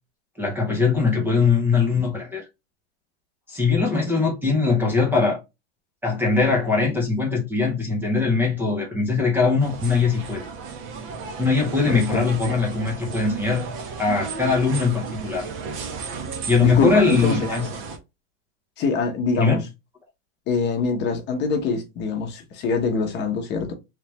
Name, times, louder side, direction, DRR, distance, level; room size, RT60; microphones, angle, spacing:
voice 1, 0.4-2.4 3.5-5.4 6.0-10.4 11.4-13.6 14.0-15.5 16.5-17.7 19.4-19.6, left 4 dB, 5° right, 0.6 m, -21 dB
sound 1, 9.6-18.0, right 5 dB, 35° right, 0.9 m, -34 dB
voice 2, 11.9-12.2 16.6-17.5 18.8-19.6 20.5-23.7, left 4 dB, 30° left, 0.9 m, -24 dB
3.3 x 3.2 x 3.0 m
supercardioid pair, 160°, 35 cm